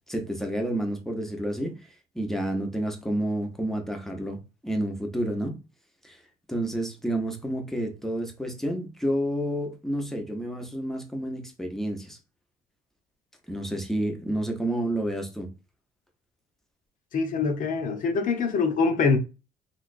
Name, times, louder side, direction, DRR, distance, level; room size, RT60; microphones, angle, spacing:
voice 1, 0.1-1.8 2.1-5.6 6.0-6.2 6.5-12.2 13.5-15.5, right 1 dB, ahead, 0.8 m, -30 dB
voice 2, 17.1-19.2, left 4 dB, 50° left, 0.8 m, -24 dB
3.1 x 3.0 x 2.5 m
cardioid pair, 110°, 17 cm